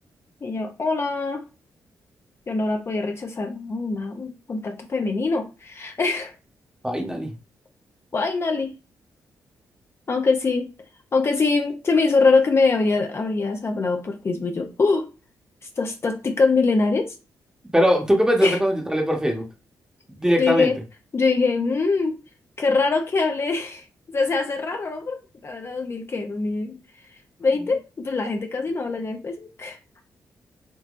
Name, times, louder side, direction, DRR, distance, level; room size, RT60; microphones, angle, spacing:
voice 1, 0.4-1.4 2.5-6.3 8.1-8.7 10.1-10.7 11.1-15.1 15.8-17.1 18.4-18.6 20.4-20.8 21.1-22.1 22.6-26.8 27.4-29.8, left 4 dB, 40° left, 4 dB, 0.6 m, -23 dB
voice 2, 6.8-7.3 17.7-19.4 20.1-20.7, equal, 10° right, 2 dB, 1.0 m, -21 dB
3.7 x 2.7 x 2.5 m, 0.31 s
cardioid pair, 65°, 7 cm